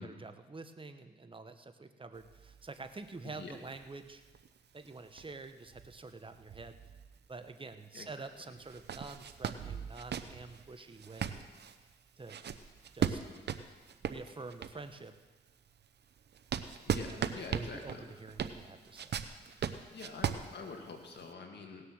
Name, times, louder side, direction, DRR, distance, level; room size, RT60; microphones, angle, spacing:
voice 1, 0.0-4.2 4.7-6.8 7.3-11.5 12.2-12.4 12.9-13.2 14.0-15.1 17.0-19.2, right 3 dB, 25° right, 9 dB, 1.1 m, -47 dB
sound 1, 2.2-7.5 7.8-7.9 8.6-15.0 15.5-21.3, right 7 dB, 60° right, 0.8 m, -39 dB
voice 2, 3.2-3.6 7.9-8.1 16.9-18.0 19.5-21.8, left 4 dB, 65° left, 2 dB, 2.2 m, -46 dB
18.0 x 6.6 x 6.5 m, 1.3 s
cardioid pair, 60°, 19 cm